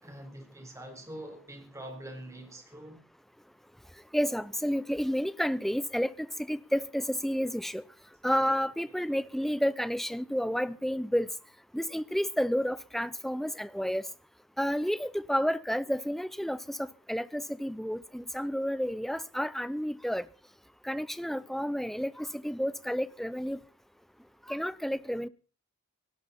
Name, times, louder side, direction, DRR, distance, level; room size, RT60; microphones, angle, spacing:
voice 1, 0.0-3.0 9.0-9.2, right 1 dB, 15° right, 4.2 m, -44 dB
voice 2, 4.1-7.8 8.2-11.3 11.7-14.1 14.6-20.3 20.8-23.6 24.5-25.3, equal, ahead, 0.7 m, -30 dB
18.5 x 17.0 x 4.3 m
head